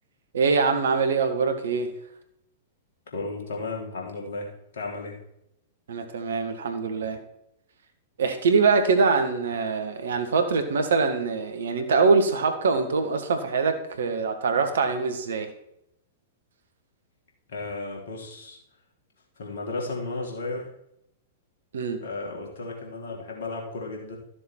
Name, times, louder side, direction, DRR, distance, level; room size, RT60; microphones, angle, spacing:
voice 1, 0.3-1.9 5.9-7.2 8.2-15.5 21.7-22.0, right 4 dB, 65° right, 7 dB, 1.6 m, -23 dB
voice 2, 3.1-4.5 4.7-5.1 17.5-18.6 19.4-20.7 22.0-24.2, left 3 dB, 65° left, 0 dB, 3.1 m, -34 dB
13.0 x 7.0 x 4.5 m, 0.77 s
figure-of-eight pair, 105°, 0 cm